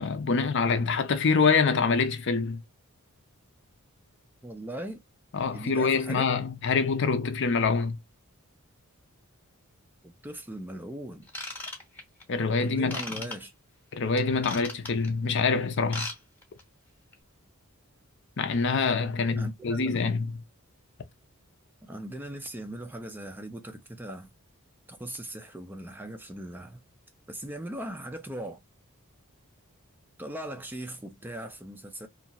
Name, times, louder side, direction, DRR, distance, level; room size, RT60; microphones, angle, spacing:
voice 1, 0.0-2.6 5.3-8.0 12.3-13.0 13.9-16.1 18.4-20.3, left 4 dB, 55° left, 0.5 m, -25 dB
voice 2, 4.4-5.0 5.5-6.3 10.0-11.3 12.6-13.5 19.3-20.1 21.9-24.3 24.9-26.8 27.3-28.6 30.2-32.1, right 1 dB, 10° right, 0.4 m, -39 dB
Ratchet pawl / Tools, 11.3-12.2 12.9-13.4 14.2-15.1 15.8-16.2 16.4-16.6 17.1-17.2, left 2 dB, 10° left, 0.8 m, -36 dB
2.7 x 2.4 x 2.8 m
head